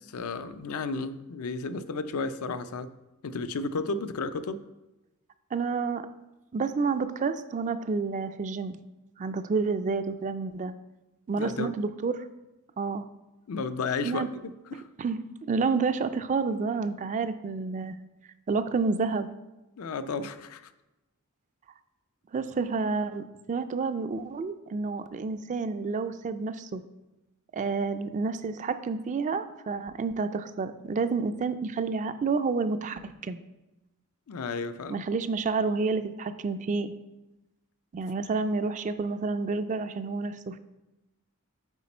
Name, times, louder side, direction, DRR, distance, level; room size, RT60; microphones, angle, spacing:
voice 1, 0.1-2.9 3.2-4.6 11.4-11.8 13.5-14.3 14.7-14.8 19.8-20.7 34.3-35.0, left 4 dB, 75° left, 11 dB, 0.5 m, -33 dB
voice 2, 5.5-6.1 6.5-8.8 9.2-10.7 11.3-12.2 12.8-13.1 14.0-14.3 15.0-15.2 15.5-18.0 18.5-19.3 22.3-26.8 27.5-33.4 34.9-36.9 37.9-40.6, right 4 dB, 35° right, 11 dB, 0.3 m, -29 dB
8.1 x 4.3 x 4.3 m, 1.0 s
head